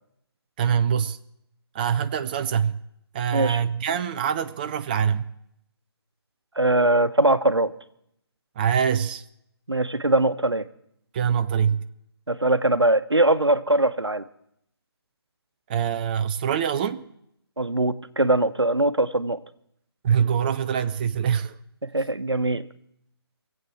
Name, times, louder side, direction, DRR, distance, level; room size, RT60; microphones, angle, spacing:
voice 1, 0.6-1.2 1.7-2.8 3.1-5.3 8.6-9.2 11.1-11.9 15.7-17.0 20.0-21.6, right 8 dB, 20° right, 9 dB, 0.5 m, -24 dB
voice 2, 6.5-7.7 9.7-10.7 12.3-14.2 17.6-19.4 21.8-22.7, right 2 dB, 90° right, 12 dB, 1.0 m, -21 dB
24.5 x 8.3 x 6.1 m, 0.74 s
figure-of-eight pair, 145°, 13 cm